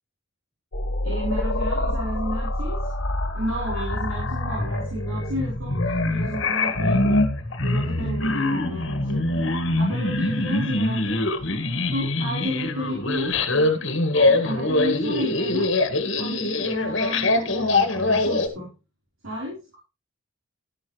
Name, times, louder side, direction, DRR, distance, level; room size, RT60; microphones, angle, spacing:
sound 1, 0.7-18.5, left 2 dB, 65° left, 1.8 m, -24 dB
voice 1, 1.0-2.8 3.3-7.2 7.6-9.2 9.8-11.2 11.9-13.8 14.1-15.7 16.1-18.7 19.2-19.8, equal, 80° right, -4 dB, 4.6 m, -32 dB
12.5 x 11.0 x 3.3 m, 0.31 s
head